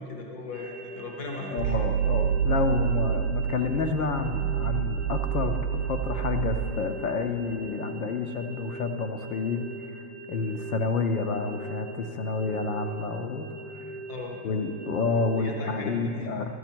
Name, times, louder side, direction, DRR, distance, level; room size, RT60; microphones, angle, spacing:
voice 1, 0.0-1.8 14.1-14.4 15.4-16.3, left 3 dB, 20° left, 1 dB, 0.7 m, -38 dB
sound 1, 0.5-16.0, right 2 dB, 30° right, 0.4 m, -42 dB
voice 2, 1.5-5.6 5.8-10.0 10.3-13.8 14.4-16.6, left 4 dB, 55° left, 6 dB, 0.7 m, -29 dB
sound 2, 1.6-6.8, right 9 dB, 65° right, 0.7 m, -27 dB
12.5 x 8.1 x 4.5 m, 2.4 s
supercardioid pair, 180°, 49 cm